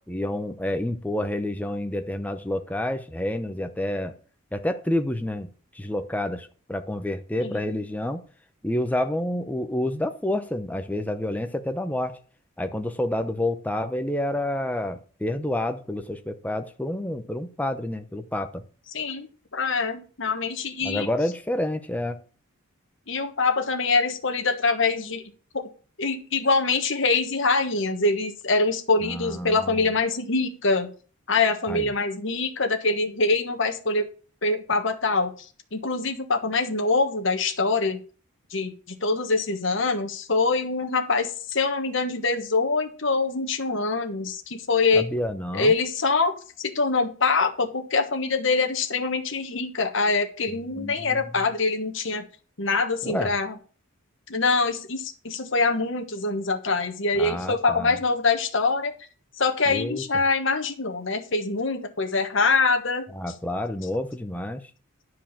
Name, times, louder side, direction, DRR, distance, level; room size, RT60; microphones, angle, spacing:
voice 1, 0.1-4.1 4.5-5.5 5.7-8.2 8.6-12.2 12.6-18.6 20.8-22.2 29.0-29.8 31.7-31.9 44.9-45.7 50.5-51.2 53.0-53.3 57.2-58.0 59.7-60.0 63.1-64.7, left 1 dB, 5° left, 0.7 m, -29 dB
voice 2, 7.4-7.8 18.9-19.3 19.5-21.1 23.1-25.2 25.5-25.7 26.0-30.9 31.3-34.1 34.4-35.3 35.7-38.0 38.5-45.1 45.5-52.2 52.6-53.5 54.3-58.9 59.4-63.0, left 3 dB, 60° left, 1.4 m, -24 dB
10.5 x 4.8 x 7.4 m
head